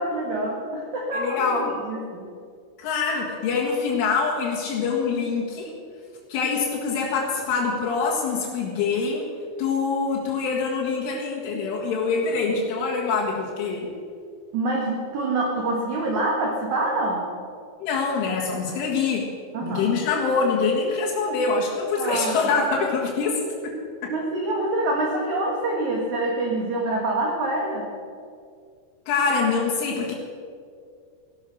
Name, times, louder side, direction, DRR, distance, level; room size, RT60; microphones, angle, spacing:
voice 1, 0.0-2.3 14.5-17.3 19.5-20.0 21.9-22.6 24.1-27.9, right 2 dB, 55° right, -1 dB, 2.2 m, -26 dB
voice 2, 1.1-1.8 2.8-5.7 6.3-9.3 9.6-13.9 17.8-19.3 19.6-23.8 24.0-24.1 29.1-30.1, left 4 dB, 80° left, -4 dB, 4.2 m, -25 dB
16.5 x 12.0 x 6.5 m, 2.3 s
omnidirectional pair, 5.6 m